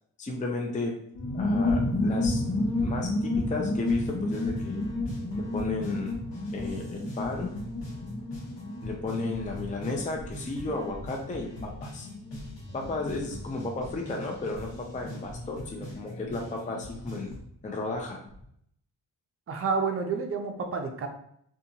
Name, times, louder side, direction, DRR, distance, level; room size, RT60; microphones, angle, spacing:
voice 1, 0.2-0.9 1.3-2.4 2.8-4.8 5.4-6.1 6.5-7.5 8.8-12.1 12.7-17.4 17.6-18.2, left 3 dB, 20° left, 1 dB, 0.5 m, -34 dB
sound 1, 1.1-17.4 17.7-17.8 18.0-18.4, left 2 dB, 45° left, 1.0 m, -32 dB
sound 2, 3.9-17.4, equal, 75° left, 1.2 m, -43 dB
voice 2, 19.5-21.1, right 5 dB, 35° right, 4 dB, 0.5 m, -29 dB
2.5 x 2.4 x 2.7 m, 0.70 s
supercardioid pair, 50°, 42 cm